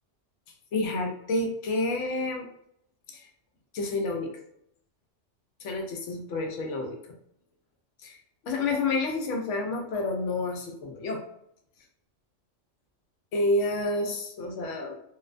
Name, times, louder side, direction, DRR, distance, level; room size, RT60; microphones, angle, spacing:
voice 1, 0.7-2.5 3.1-3.3 3.7-4.3 5.6-7.0 8.0-8.2 8.4-11.2 13.3-15.0, left 2 dB, 80° left, 2 dB, 0.9 m, -29 dB
2.4 x 2.1 x 2.5 m, 0.72 s
omnidirectional pair, 1.2 m